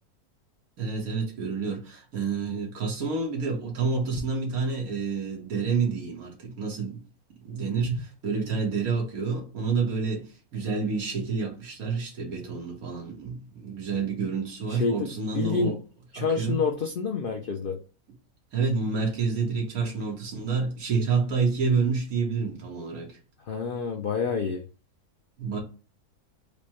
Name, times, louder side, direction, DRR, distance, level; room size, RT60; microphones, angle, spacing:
voice 1, 0.8-7.0 7.4-15.8 16.2-16.6 18.5-23.2 25.4-25.6, right 4 dB, 70° right, 1.7 m, -28 dB
voice 2, 14.7-15.8 16.1-17.8 23.5-24.7, left 5 dB, 80° left, 0.4 m, -28 dB
5.0 x 2.1 x 2.9 m
omnidirectional pair, 1.6 m